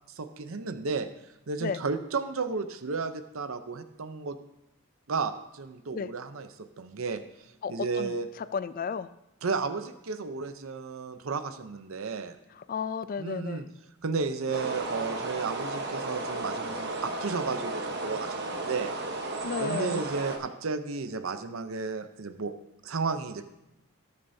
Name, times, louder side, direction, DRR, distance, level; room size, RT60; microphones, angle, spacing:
voice 1, 0.2-1.1 1.5-4.4 5.1-7.2 7.7-8.3 9.4-12.4 13.2-13.6 14.0-18.9 19.6-22.5 22.8-23.5, right 4 dB, 70° right, 9 dB, 0.7 m, -33 dB
voice 2, 7.6-8.2 8.5-9.1 12.6-13.7 14.5-14.6 19.4-20.0, left 5 dB, 40° left, 14 dB, 0.3 m, -33 dB
sound 1, 14.5-20.4, right 2 dB, 50° right, 1.1 m, -34 dB
19.5 x 6.7 x 2.7 m, 0.90 s
head